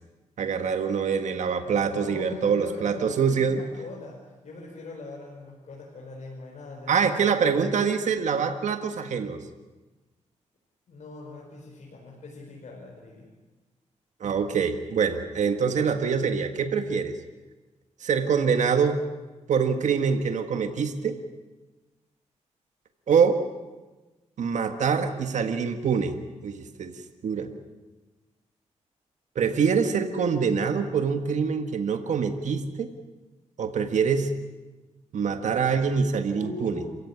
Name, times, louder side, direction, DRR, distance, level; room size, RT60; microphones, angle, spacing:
voice 1, 0.4-3.6 6.9-9.4 14.2-17.1 18.0-19.0 19.5-21.2 23.1-23.4 24.4-26.2 26.4-26.9 27.2-27.5 29.4-32.9 33.6-34.3 35.1-36.8, right 6 dB, 75° right, 7 dB, 1.7 m, -25 dB
voice 2, 1.9-4.2 4.4-7.6 10.9-13.3 36.3-37.0, left 3 dB, 70° left, -2 dB, 5.3 m, -41 dB
27.5 x 16.0 x 9.9 m, 1.2 s
cardioid pair, 85°, 12 cm